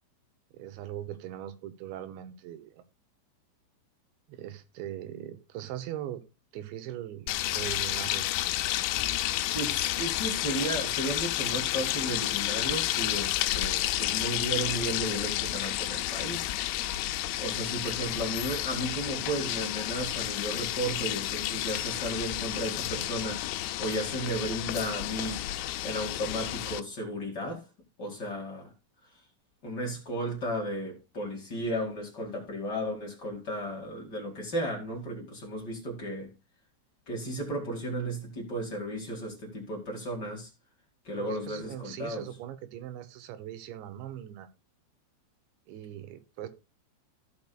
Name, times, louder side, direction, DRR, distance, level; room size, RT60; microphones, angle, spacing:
voice 1, 0.5-2.8 4.3-6.2 6.5-8.3 10.2-10.3 18.2-18.3 41.2-44.5 45.7-46.5, right 12 dB, 80° right, 3.0 m, -40 dB
sound 1, 7.3-26.8, left 15 dB, 85° left, 3.1 m, -31 dB
voice 2, 9.5-16.5 17.4-23.4 23.8-25.4 25.8-27.6 28.0-28.7 29.6-36.3 37.1-40.5 41.0-42.3, right 1 dB, 50° left, 1.3 m, -34 dB
16.0 x 6.0 x 2.3 m
omnidirectional pair, 5.5 m